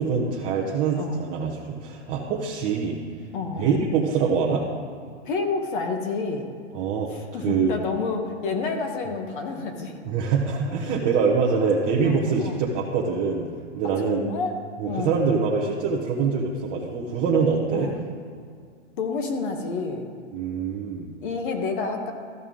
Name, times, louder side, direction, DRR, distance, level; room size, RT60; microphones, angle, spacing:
voice 1, 0.0-3.0 3.6-4.6 6.7-7.1 7.4-7.7 10.1-13.5 13.7-14.2 14.8-17.9 20.3-21.1, right 5 dB, 20° right, -3 dB, 0.7 m, -24 dB
voice 2, 3.3-3.8 5.2-6.5 7.1-9.9 12.0-12.6 14.0-14.6 14.8-15.2 17.7-18.0 19.0-20.1 21.2-22.1, left 4 dB, 45° left, 4 dB, 1.3 m, -29 dB
14.0 x 5.4 x 3.7 m, 2.2 s
hypercardioid pair, 155°, 35 cm